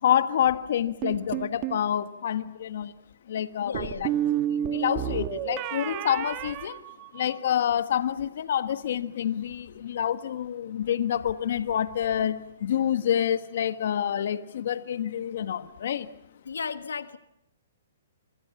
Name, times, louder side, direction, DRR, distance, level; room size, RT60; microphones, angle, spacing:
voice 1, 0.0-2.9 3.3-4.1 4.5-6.8 7.1-16.1, left 9 dB, 60° left, 12 dB, 1.4 m, -27 dB
sound 1, 1.0-1.8 3.7-7.5, right 11 dB, 30° right, 1.7 m, -30 dB
voice 2, 3.6-4.1 16.5-17.2, left 5 dB, 90° left, 12 dB, 1.3 m, -34 dB
26.0 x 24.5 x 7.2 m, 0.83 s
hypercardioid pair, 150°, 0 cm